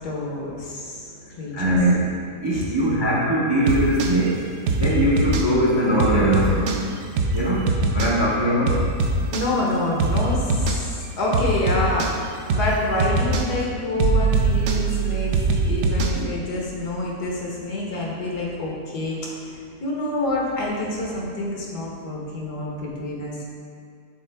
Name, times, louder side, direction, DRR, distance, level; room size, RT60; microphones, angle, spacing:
voice 1, 0.0-1.8 2.5-2.7 9.3-12.1 12.5-15.3 15.6-19.2 19.5-23.5, left 2 dB, 75° left, -3 dB, 1.6 m, -27 dB
voice 2, 1.5-2.1 2.4-4.4 4.7-6.8 7.3-7.6 7.9-8.8 15.9-16.3, right 1 dB, 25° right, -6 dB, 0.5 m, -21 dB
sound 1, 3.7-4.1 4.7-5.5 6.0-6.8 7.2-7.4 7.7-8.1 8.7-9.5 10.0-10.8 11.3-12.1 12.5-12.7 13.0-13.5 14.0-16.2, right 3 dB, 70° right, 0.7 m, -22 dB
7.0 x 4.0 x 3.4 m, 2.4 s
omnidirectional pair, 1.7 m